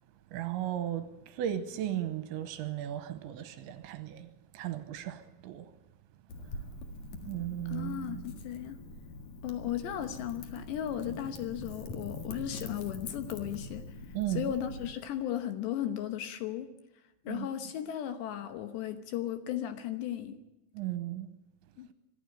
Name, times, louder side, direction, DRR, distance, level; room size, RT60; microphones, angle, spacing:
voice 1, 0.3-5.7 7.2-8.3 14.1-14.5 17.3-17.5 20.7-21.3, right 12 dB, 80° right, 3.0 m, -36 dB
Wind / Fire, 6.3-14.9, left 2 dB, 55° left, 2.1 m, -44 dB
voice 2, 7.7-8.8 9.4-13.8 14.3-16.7 17.3-20.4 21.8-21.9, left 11 dB, 75° left, 2.9 m, -36 dB
24.5 x 12.0 x 9.0 m
omnidirectional pair, 5.8 m